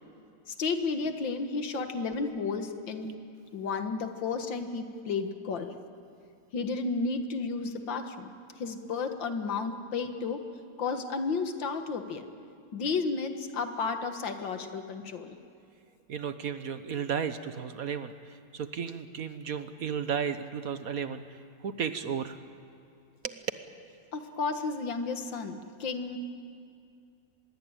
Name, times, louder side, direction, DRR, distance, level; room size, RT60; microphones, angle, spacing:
voice 1, 0.5-3.1 3.5-5.7 6.5-8.3 8.6-10.4 10.8-12.3 12.7-15.4 24.1-26.2, left 4 dB, 90° left, 7 dB, 2.3 m, -32 dB
voice 2, 16.1-22.4 23.2-23.5, right 7 dB, 55° right, 10 dB, 1.3 m, -34 dB
25.0 x 21.0 x 8.9 m, 2.5 s
omnidirectional pair, 2.0 m